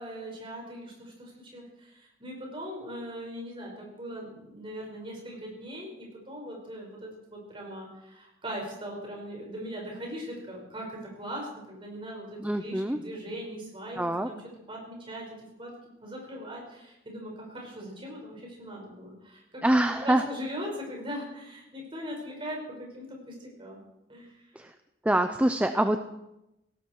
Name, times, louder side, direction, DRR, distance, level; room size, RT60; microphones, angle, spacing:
voice 1, 0.0-14.0 14.3-14.4 14.7-15.3 15.6-15.7 16.0-19.8 20.0-23.8 24.1-24.3, equal, 30° right, -1 dB, 5.8 m, -40 dB
voice 2, 12.4-13.0 14.0-14.3 19.6-20.2 24.6-24.7 25.0-26.0, right 1 dB, 10° right, 8 dB, 0.6 m, -25 dB
17.5 x 17.5 x 4.7 m, 0.91 s
head